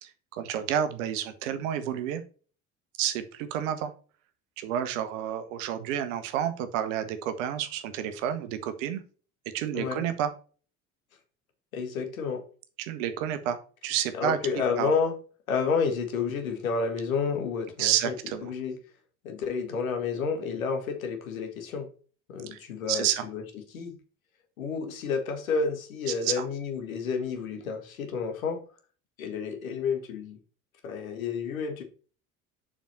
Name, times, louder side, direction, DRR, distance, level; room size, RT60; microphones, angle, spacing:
voice 1, 0.0-2.2 3.0-3.9 4.6-9.0 9.5-10.3 12.8-13.6 13.8-14.4 14.8-14.9 17.8-18.5 22.5-22.6 22.9-23.2 26.2-26.5, right 10 dB, 60° right, 10 dB, 1.2 m, -30 dB
voice 2, 11.7-12.4 14.1-15.1 15.5-18.1 18.4-18.8 19.2-21.9 22.3-23.4 23.7-24.0 24.6-28.6 29.2-30.4 30.8-31.8, left 5 dB, 70° left, 6 dB, 1.7 m, -30 dB
7.3 x 5.7 x 4.1 m, 0.38 s
figure-of-eight pair, 60°, 42 cm